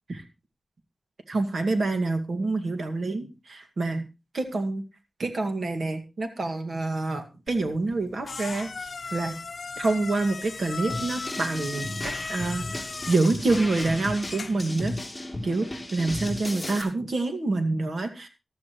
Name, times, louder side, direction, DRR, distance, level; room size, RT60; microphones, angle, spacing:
voice 1, 1.3-4.1 4.3-4.8 5.2-9.4 9.8-15.0 15.4-15.7 15.9-18.3, right 3 dB, 65° right, 6 dB, 2.2 m, -27 dB
sound 1, 7.5-14.8, left 4 dB, 55° left, 0.8 m, -38 dB
sound 2, 10.9-16.8, left 1 dB, 10° left, 3.4 m, -35 dB
15.0 x 12.5 x 3.1 m, 0.27 s
wide cardioid pair, 125°, 0 cm